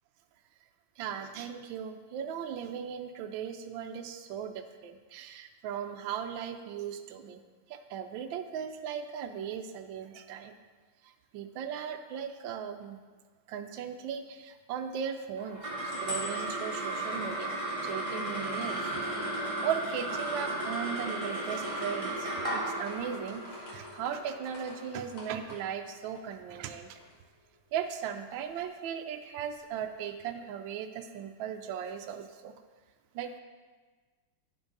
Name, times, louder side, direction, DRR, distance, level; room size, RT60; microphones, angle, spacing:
voice 1, 1.0-7.4 7.7-10.6 11.3-13.0 13.5-23.4 23.7-27.0 27.7-32.5 33.1-33.3, right 8 dB, 75° right, 6 dB, 1.2 m, -38 dB
sound 1, 15.4-26.0, right 1 dB, 25° right, 0.7 m, -35 dB
sound 2, 15.5-19.6 20.1-20.9 21.2-26.7 27.0-27.1 27.4-28.6, left 1 dB, 90° left, 2.9 m, -47 dB
10.5 x 6.1 x 3.9 m, 1.4 s
omnidirectional pair, 2.3 m